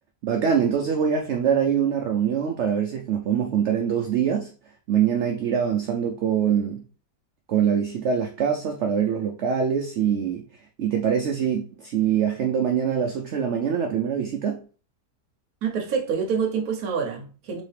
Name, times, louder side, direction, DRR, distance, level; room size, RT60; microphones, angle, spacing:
voice 1, 0.2-4.5 4.9-6.8 7.5-10.4 10.8-14.6, right 8 dB, 80° right, 0.6 m, -24 dB
voice 2, 15.6-17.6, right 6 dB, 65° right, 1.1 m, -26 dB
4.1 x 2.8 x 3.2 m
omnidirectional pair, 1.8 m